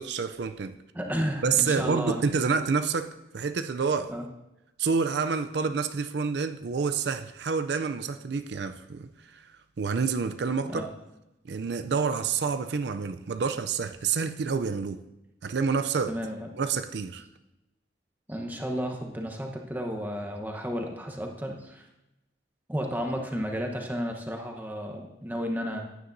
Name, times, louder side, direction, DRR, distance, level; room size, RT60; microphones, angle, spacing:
voice 1, 0.0-0.8 1.4-4.1 4.8-9.5 9.8-10.9 11.5-15.0 15.4-16.2 16.6-17.3, right 5 dB, 70° right, 0.4 m, -28 dB
voice 2, 0.9-2.2 4.1-4.3 10.7-10.9 16.1-16.5 18.3-21.9 22.7-25.8, equal, 10° right, 1.0 m, -32 dB
15.5 x 9.6 x 2.6 m
head